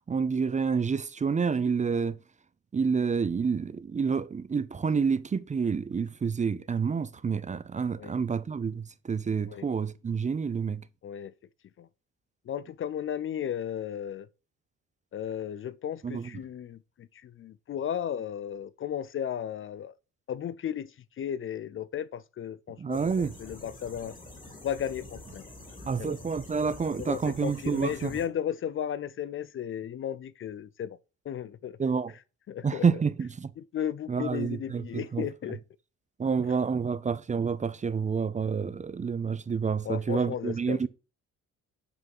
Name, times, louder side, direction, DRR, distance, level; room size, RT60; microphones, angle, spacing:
voice 1, 0.1-2.2 2.7-10.8 16.0-16.3 22.8-23.4 25.9-28.2 31.8-32.1 32.6-33.5 34.1-35.3 36.2-40.9, right 5 dB, 25° right, 0.5 m, -28 dB
voice 2, 12.5-14.3 15.1-19.9 20.3-20.9 21.2-23.0 23.4-24.2 24.6-25.4 26.0-26.2 27.0-31.0 31.3-31.8 32.5-32.8 33.7-35.6 36.5-36.6 39.8-40.9, left 9 dB, 45° left, 0.4 m, -34 dB
sound 1, 22.9-28.3, left 2 dB, 25° left, 3.2 m, -47 dB
8.3 x 3.6 x 5.4 m
cardioid pair, 90°, 30 cm